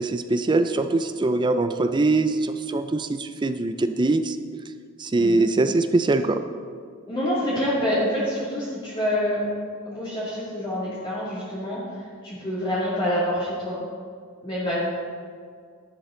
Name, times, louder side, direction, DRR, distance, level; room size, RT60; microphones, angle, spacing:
voice 1, 0.0-4.4 5.0-6.4, right 2 dB, 20° right, 9 dB, 0.4 m, -22 dB
voice 2, 7.1-9.5 9.8-11.8 12.2-13.8 14.4-14.8, equal, 25° left, -9 dB, 2.3 m, -26 dB
11.5 x 11.0 x 3.8 m, 2.1 s
head